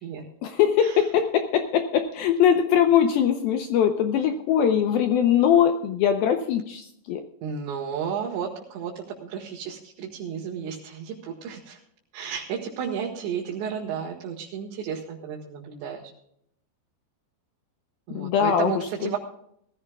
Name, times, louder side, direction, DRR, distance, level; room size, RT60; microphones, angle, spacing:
voice 1, 0.4-7.2 18.1-18.7 19.0-19.1, left 9 dB, 75° left, 6 dB, 2.3 m, -21 dB
voice 2, 7.4-11.8 12.1-16.1 18.1-19.2, right 7 dB, 85° right, -3 dB, 3.8 m, -33 dB
20.0 x 14.5 x 2.3 m, 0.70 s
omnidirectional pair, 5.0 m